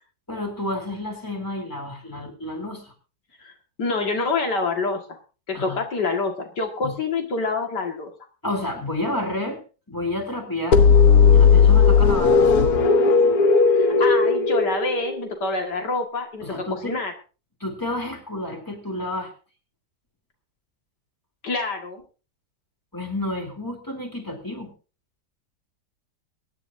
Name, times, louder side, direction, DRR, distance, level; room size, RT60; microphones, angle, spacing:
voice 1, 0.3-2.9 5.5-5.8 6.8-6.9 8.4-9.6 9.9-10.8 11.2-12.5 16.4-17.0 17.6-19.3 22.9-24.7, left 1 dB, 10° left, 3 dB, 3.3 m, -30 dB
voice 2, 3.8-5.2 5.5-8.1 13.7-17.1 21.4-22.0, left 3 dB, 80° left, 3 dB, 2.6 m, -27 dB
sound 1, 10.7-15.5, left 5 dB, 65° left, 1.5 m, -16 dB
24.0 x 10.5 x 2.7 m, 0.34 s
omnidirectional pair, 1.8 m